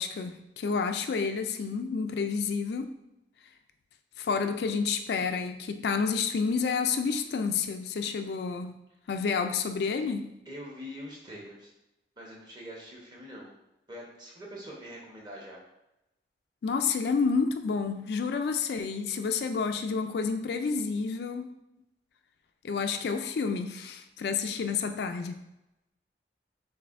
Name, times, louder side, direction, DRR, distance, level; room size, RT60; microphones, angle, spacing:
voice 1, 0.0-2.9 4.2-8.8 9.1-10.3 16.6-21.5 22.6-25.4, left 5 dB, 70° left, 7 dB, 0.3 m, -29 dB
voice 2, 10.5-11.7 12.2-13.5 13.9-15.6, equal, 25° right, -3 dB, 1.0 m, -44 dB
6.6 x 2.6 x 2.5 m, 0.91 s
head